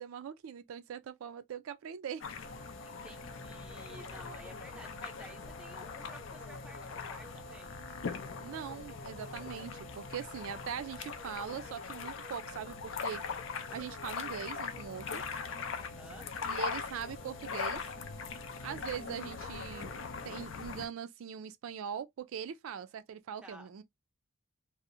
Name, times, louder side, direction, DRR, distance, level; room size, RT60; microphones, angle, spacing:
voice 1, 0.0-2.2 8.4-13.2 13.7-15.2 16.4-17.8 18.6-19.9 20.2-23.8, right 8 dB, 75° right, 0.3 m, -41 dB
sound 1, 2.2-20.9, left 5 dB, 65° left, 0.4 m, -41 dB
sound 2, 2.4-20.4, equal, 45° left, 0.8 m, -51 dB
voice 2, 2.8-7.8 15.8-16.3 23.4-23.7, right 1 dB, 5° right, 0.4 m, -53 dB
2.6 x 2.0 x 2.5 m
head